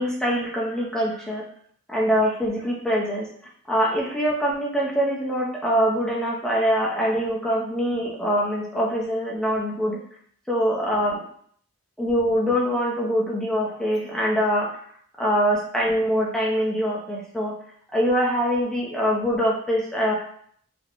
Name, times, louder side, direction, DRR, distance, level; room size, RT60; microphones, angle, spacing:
voice 1, 0.0-1.4 1.9-3.3 3.7-10.0 10.5-11.2 12.0-14.7 15.2-17.5 17.9-20.2, equal, 5° left, -4 dB, 0.4 m, -23 dB
2.4 x 2.0 x 2.9 m, 0.62 s
head